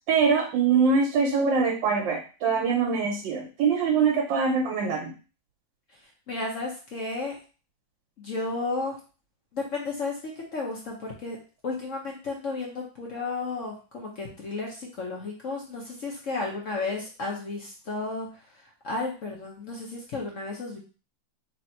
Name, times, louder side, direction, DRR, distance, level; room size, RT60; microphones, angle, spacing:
voice 1, 0.1-5.1, right 5 dB, 75° right, 1 dB, 1.4 m, -23 dB
voice 2, 6.3-7.3 8.2-8.9 9.5-11.4 11.6-18.3 18.8-20.8, left 3 dB, 55° left, -1 dB, 0.9 m, -33 dB
3.3 x 2.8 x 4.3 m, 0.35 s
omnidirectional pair, 2.1 m